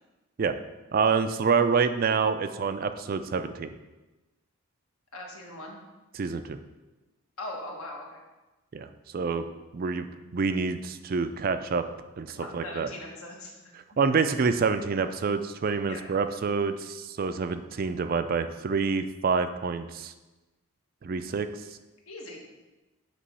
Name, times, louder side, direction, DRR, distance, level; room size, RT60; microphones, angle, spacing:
voice 1, 0.9-3.7 6.1-6.6 8.7-8.9 9.1-9.4 9.7-10.1 10.3-11.8 12.2-12.9 14.0-20.1 21.0-21.5, right 5 dB, 40° right, 9 dB, 0.3 m, -27 dB
voice 2, 5.1-5.8 7.4-8.2 12.4-13.7 15.9-16.1 22.1-22.4, left 2 dB, 70° left, -1 dB, 1.4 m, -40 dB
8.3 x 3.0 x 5.4 m, 1.1 s
head